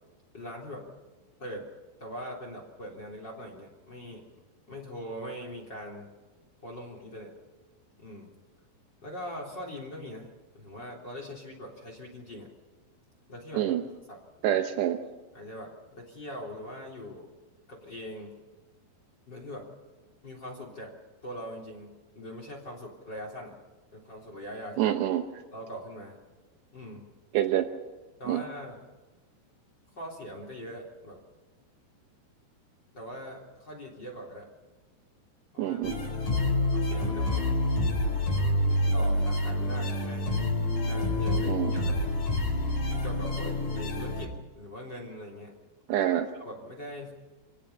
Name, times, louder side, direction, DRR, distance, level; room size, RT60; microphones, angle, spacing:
voice 1, 0.3-0.9 1.4-1.7 2.0-4.3 4.7-6.1 6.6-7.3 8.0-8.3 9.0-12.5 13.3-14.2 15.3-17.3 17.7-18.3 19.3-19.7 20.2-20.9 21.2-23.6 23.9-25.0 25.5-26.2 26.7-27.1 28.2-28.8 30.0-31.2 32.9-34.5 35.5-36.0 36.7-37.5 38.7-40.3 40.9-42.0 42.9-45.5 46.4-47.1, equal, 25° left, 1 dB, 3.7 m, -42 dB
voice 2, 14.4-15.0 24.8-25.2 27.3-27.7 28.3-28.4 35.6-36.0 41.5-41.8 45.9-46.3, right 12 dB, 80° right, 6 dB, 3.1 m, -26 dB
sound 1, 35.8-44.3, left 1 dB, 45° left, 5.8 m, -27 dB
27.5 x 17.5 x 5.6 m, 1.2 s
omnidirectional pair, 4.9 m